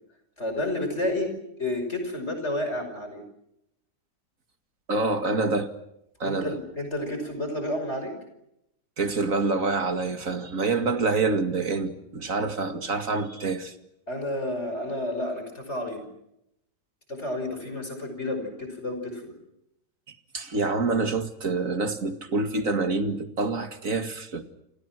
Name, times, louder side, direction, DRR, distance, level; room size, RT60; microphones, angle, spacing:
voice 1, 0.4-1.3 1.6-3.2 6.2-8.1 14.1-16.1 17.1-19.3, left 1 dB, 40° left, 6.0 m, -30 dB
voice 2, 4.9-5.7 6.2-6.6 9.0-13.7 20.1-24.4, right 3 dB, 50° right, 2.6 m, -27 dB
28.0 x 28.0 x 6.1 m
omnidirectional pair, 1.8 m